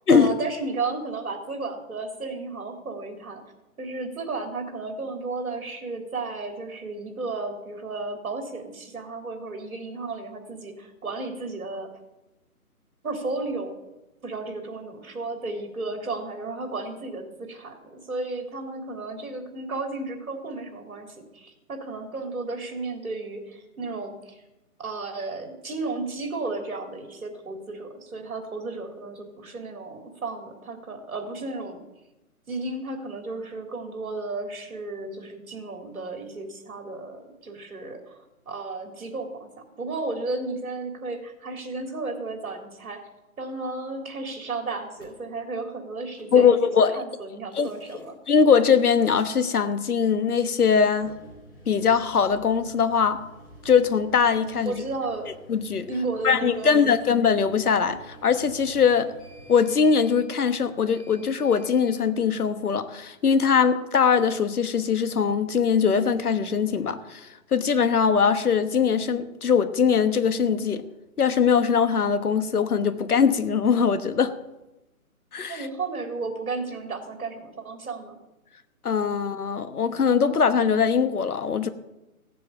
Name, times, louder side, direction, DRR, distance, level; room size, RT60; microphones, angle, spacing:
voice 1, 0.1-3.4 3.8-11.9 13.0-13.8 14.2-24.4 24.8-31.8 32.5-38.2 38.5-39.5 39.8-43.0 43.4-46.5 47.0-48.2 54.6-55.3 55.9-56.9 75.5-78.2, right 3 dB, 70° right, 4 dB, 3.4 m, -33 dB
sound 1, 44.9-45.2 46.1-46.5 47.4-48.1 48.6-49.3 50.9-61.9, right 1 dB, 10° left, 2.5 m, -50 dB
voice 2, 46.3-47.0 47.5-51.1 51.7-53.2 53.6-54.8 55.5-55.9 56.2-59.1 59.5-70.8 71.2-74.3 75.3-75.7 78.8-81.7, left 6 dB, 85° left, 11 dB, 1.3 m, -21 dB
16.0 x 7.6 x 7.0 m, 1.0 s
hypercardioid pair, 170°, 44 cm